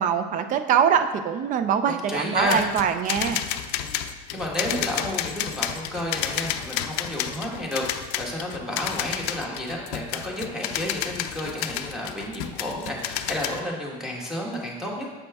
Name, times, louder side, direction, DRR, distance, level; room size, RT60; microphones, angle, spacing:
voice 1, 0.0-3.4, right 8 dB, 40° right, 9 dB, 0.5 m, -23 dB
voice 2, 2.1-2.6 4.3-15.1, left 1 dB, 5° right, -2 dB, 1.4 m, -31 dB
sound 1, 2.4-13.6, left 11 dB, 80° left, 0.5 m, -31 dB
6.9 x 5.0 x 3.5 m, 1.2 s
supercardioid pair, 120°, 20 cm